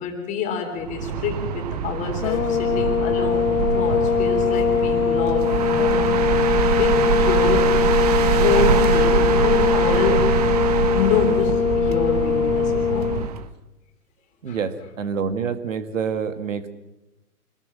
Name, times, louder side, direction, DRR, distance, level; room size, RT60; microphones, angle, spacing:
voice 1, 0.0-7.8 8.4-10.3 10.9-13.1 14.5-14.6, left 6 dB, 15° left, 3 dB, 3.4 m, -27 dB
sound 1, 0.8-13.5, right 7 dB, 25° right, 0.9 m, -24 dB
sound 2, 2.2-13.3, left 7 dB, 65° left, 0.9 m, -21 dB
voice 2, 14.4-16.7, right 6 dB, 55° right, 10 dB, 2.0 m, -27 dB
26.0 x 20.0 x 6.3 m, 0.97 s
hypercardioid pair, 150°, 46 cm